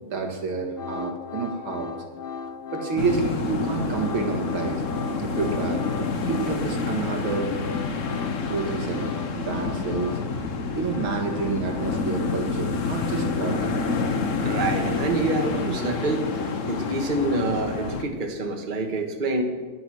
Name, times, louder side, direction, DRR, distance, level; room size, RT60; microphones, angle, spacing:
voice 1, 0.1-2.0 2.7-4.8 5.2-5.8 6.2-7.5 8.5-10.2 10.6-13.7, right 4 dB, 75° right, 3 dB, 2.7 m, -29 dB
sound 1, 0.8-3.2 3.4-6.8 7.0-17.9, left 5 dB, 80° left, 0.5 m, -37 dB
sound 2, 3.0-18.0, left 4 dB, 45° left, 1.2 m, -28 dB
voice 2, 14.4-16.3 16.7-19.4, right 2 dB, 25° right, 3 dB, 1.6 m, -26 dB
18.5 x 10.5 x 6.4 m, 1.4 s
omnidirectional pair, 2.3 m